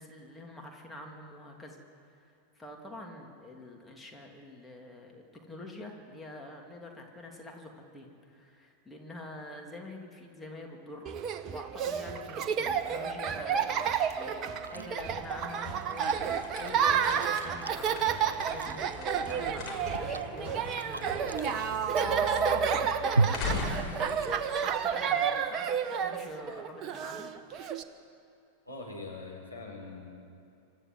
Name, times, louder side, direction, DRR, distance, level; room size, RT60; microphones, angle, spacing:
voice 1, 0.0-11.1 11.5-14.4 14.7-16.1 16.6-18.9 19.2-27.3, left 2 dB, 10° left, 0 dB, 2.9 m, -46 dB
Laughter, 11.1-27.8, right 7 dB, 35° right, 1.2 m, -31 dB
Chewing mastication, 14.5-24.7, right 3 dB, 80° right, 0.4 m, -38 dB
sound 1, 14.7-25.4, left 4 dB, 35° left, 5.1 m, -41 dB
voice 2, 28.6-30.1, left 3 dB, 90° left, -2 dB, 4.9 m, -42 dB
25.5 x 13.5 x 8.0 m, 2.6 s
figure-of-eight pair, 90°, 0 cm